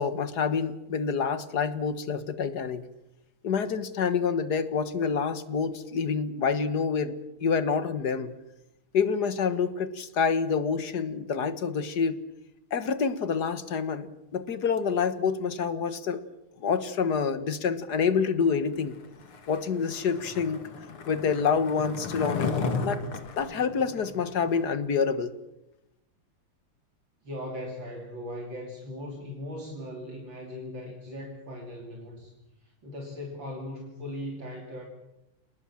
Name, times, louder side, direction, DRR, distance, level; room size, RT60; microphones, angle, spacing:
voice 1, 0.0-2.9 3.4-7.1 7.4-8.3 8.9-12.2 12.7-16.2 16.6-18.9 19.5-20.6 21.1-22.5 22.8-23.0 23.4-25.3, left 6 dB, 50° left, 13 dB, 1.8 m, -27 dB
Skateboard, 19.2-24.6, left 5 dB, 85° left, 3.1 m, -34 dB
voice 2, 27.2-32.3 32.6-34.9, left 1 dB, 60° right, 1 dB, 3.8 m, -39 dB
28.5 x 19.5 x 7.3 m, 0.89 s
omnidirectional pair, 2.3 m